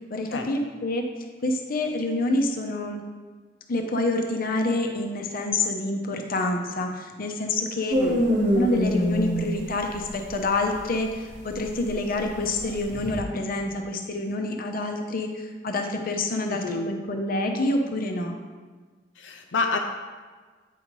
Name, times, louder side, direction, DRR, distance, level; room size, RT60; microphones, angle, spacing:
voice 1, 0.1-1.0 1.4-3.0 3.7-8.0 8.3-18.3, left 2 dB, 50° left, 3 dB, 0.8 m, -27 dB
sound 1, 7.9-13.2, equal, 45° right, 1.2 m, -25 dB
voice 2, 16.5-16.9 19.2-19.8, left 4 dB, 85° left, 3 dB, 0.6 m, -28 dB
8.6 x 5.2 x 3.1 m, 1.4 s
head